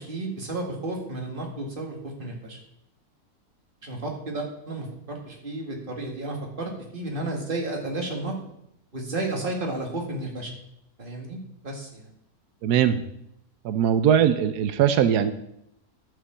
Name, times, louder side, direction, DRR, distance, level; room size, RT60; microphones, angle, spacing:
voice 1, 0.0-2.6 3.8-8.3 8.9-10.5 11.0-11.4 11.6-12.1, right 2 dB, 35° right, 1 dB, 2.2 m, -32 dB
voice 2, 12.6-13.0 13.6-15.3, right 9 dB, 90° right, 11 dB, 1.2 m, -20 dB
11.0 x 5.6 x 7.2 m, 0.77 s
omnidirectional pair, 1.7 m